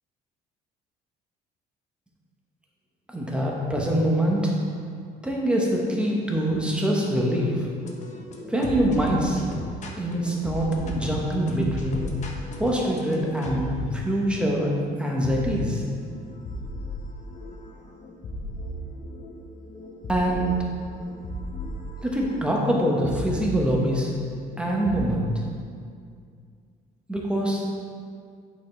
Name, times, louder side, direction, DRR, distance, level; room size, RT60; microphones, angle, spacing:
voice 1, 3.1-4.5 5.2-7.7 8.5-9.4 10.0-12.0 12.6-14.7 15.0-15.8 20.1-20.7 22.0-24.1 24.6-25.3 27.1-27.6, right 1 dB, 5° right, -2 dB, 1.1 m, -24 dB
sound 1, 7.8-25.1, left 1 dB, 45° left, 0.8 m, -36 dB
8.2 x 4.3 x 3.3 m, 2.2 s
cardioid pair, 110°, 17 cm